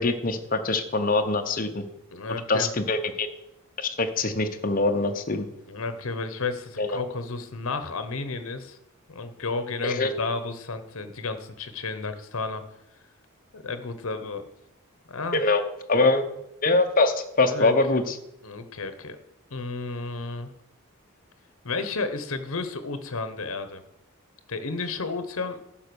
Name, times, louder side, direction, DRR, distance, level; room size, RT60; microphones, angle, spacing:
voice 1, 0.0-1.8 2.5-3.3 3.8-5.5 6.8-7.0 9.8-10.1 15.3-15.6 15.9-16.2 16.6-18.1, left 3 dB, 40° left, 6 dB, 0.8 m, -23 dB
voice 2, 2.1-2.7 5.7-8.8 9.1-12.6 13.5-14.4 15.1-15.4 17.5-17.7 18.4-19.2 19.5-20.5 21.6-23.8 24.5-25.6, left 3 dB, 65° left, 10 dB, 1.0 m, -32 dB
10.5 x 5.6 x 6.9 m, 0.84 s
head